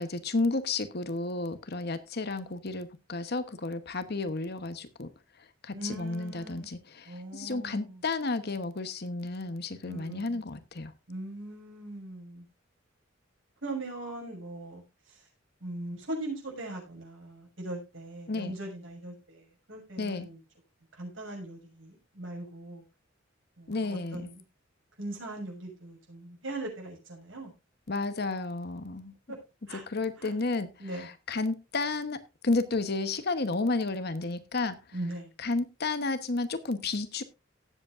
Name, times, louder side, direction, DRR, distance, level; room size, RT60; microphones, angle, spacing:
voice 1, 0.0-5.1 5.6-10.9 18.3-18.5 20.0-20.3 23.7-24.3 27.9-29.1 29.9-30.7 30.9-34.8 35.4-37.2, left 3 dB, 55° left, 1.1 m, -32 dB
voice 2, 5.7-6.7 7.0-8.0 9.8-10.4 11.1-12.4 13.6-14.8 15.1-15.2 15.6-20.4 20.9-22.8 23.6-24.4 25.0-27.5 29.3-29.4 29.7-29.8 30.2-30.3 30.8-31.1 34.9-35.3, right 2 dB, 75° right, 6.7 m, -40 dB
18.5 x 8.0 x 2.6 m
head